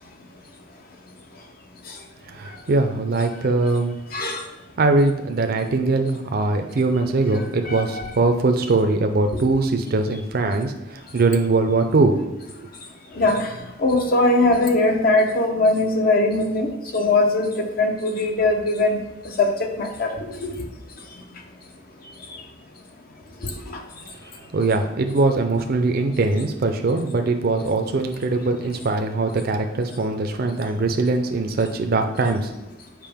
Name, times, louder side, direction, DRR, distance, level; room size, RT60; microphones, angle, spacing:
voice 1, 2.3-3.9 4.8-12.1 12.6-12.7 24.5-32.5, right 3 dB, 50° right, 5 dB, 0.5 m, -21 dB
voice 2, 4.1-4.4 7.7-8.0 9.3-9.4 13.1-13.5 13.8-20.6 23.4-23.5, left 2 dB, 50° left, 3 dB, 0.8 m, -21 dB
7.5 x 4.7 x 3.5 m, 0.93 s
head